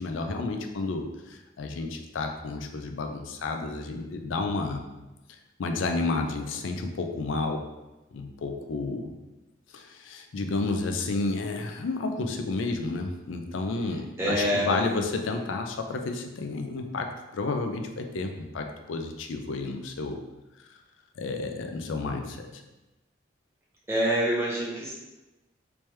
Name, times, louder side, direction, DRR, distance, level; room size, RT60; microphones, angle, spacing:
voice 1, 0.0-4.9 5.6-7.6 8.1-9.1 9.7-20.2 21.2-22.6, left 3 dB, 85° left, 5 dB, 0.4 m, -31 dB
voice 2, 14.2-14.8 23.9-24.9, equal, 15° right, -6 dB, 0.9 m, -26 dB
3.3 x 3.2 x 3.0 m, 1.1 s
head